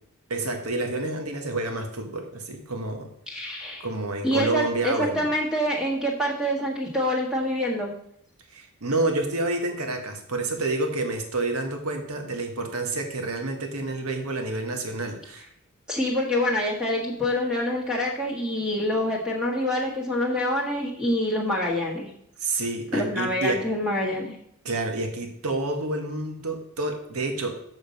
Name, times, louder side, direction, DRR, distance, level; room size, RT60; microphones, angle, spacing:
voice 1, 0.3-3.1 3.8-5.3 8.5-15.5 22.4-23.6 24.6-27.6, right 2 dB, 75° right, 5 dB, 1.4 m, -29 dB
voice 2, 3.3-3.9 4.2-7.9 15.9-22.1 22.9-24.3, left 1 dB, 5° right, -3 dB, 1.5 m, -26 dB
7.1 x 6.4 x 5.3 m, 0.70 s
head